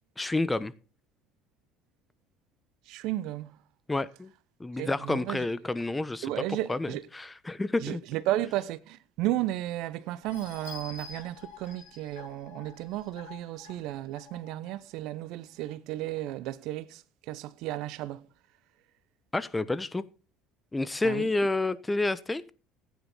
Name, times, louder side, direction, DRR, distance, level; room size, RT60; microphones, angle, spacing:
voice 1, 0.2-0.7 3.9-4.3 4.6-8.0 19.3-20.0 20.7-22.5, left 2 dB, 15° left, 1.1 m, -29 dB
voice 2, 2.9-3.5 4.8-5.5 6.2-7.0 7.8-18.2 21.0-21.3, right 15 dB, 65° right, 0.7 m, -34 dB
sound 1, 10.2-14.7 15.2-15.3 15.7-15.8, left 5 dB, 85° left, 6.6 m, -48 dB
15.0 x 9.6 x 4.2 m
hypercardioid pair, 65°, 0 cm